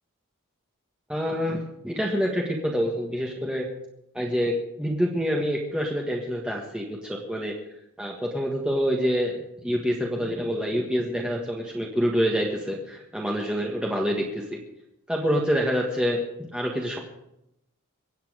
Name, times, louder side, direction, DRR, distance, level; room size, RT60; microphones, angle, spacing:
voice 1, 1.1-3.7 4.1-7.5 8.0-14.6 15.1-17.0, equal, 5° right, -2 dB, 1.6 m, -27 dB
23.5 x 8.8 x 5.0 m, 0.83 s
head